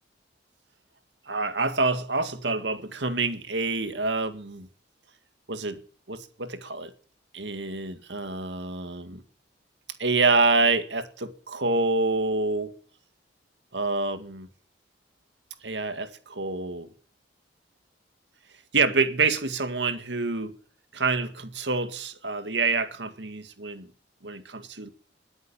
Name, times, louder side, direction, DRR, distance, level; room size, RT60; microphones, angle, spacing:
voice 1, 1.3-4.7 5.5-5.8 6.1-6.9 7.3-9.2 10.0-12.8 13.7-14.5 15.6-16.9 18.7-20.6 20.9-23.9 24.2-24.9, right 3 dB, 80° right, 2.0 m, -27 dB
21.0 x 9.5 x 7.1 m
head